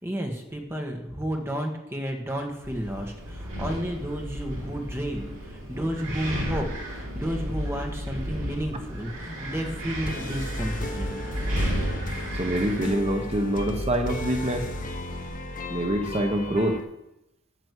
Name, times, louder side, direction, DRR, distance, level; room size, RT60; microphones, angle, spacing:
voice 1, 0.0-6.7 6.9-11.2, equal, 10° right, 2 dB, 1.6 m, -32 dB
Wind, 2.6-15.3, equal, 65° right, 4.4 m, -34 dB
sound 1, 10.0-16.8, left 1 dB, 40° left, 1.0 m, -34 dB
voice 2, 12.4-14.7 15.7-16.8, right 1 dB, 30° right, 5 dB, 1.0 m, -25 dB
9.2 x 6.8 x 8.2 m, 0.88 s
head